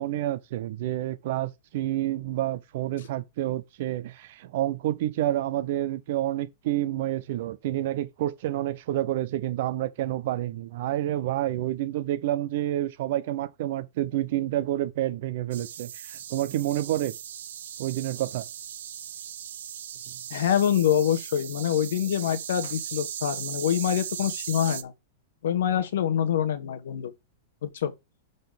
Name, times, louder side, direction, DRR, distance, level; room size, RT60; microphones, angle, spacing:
voice 1, 0.0-17.1 17.8-18.5, right 14 dB, 45° right, 0.7 m, -29 dB
sound 1, 15.5-24.8, right 10 dB, 80° right, 0.7 m, -38 dB
voice 2, 20.3-24.9 25.4-27.1 27.6-27.9, left 9 dB, 75° left, 1.2 m, -25 dB
6.6 x 4.1 x 5.0 m
supercardioid pair, 175°, 0 cm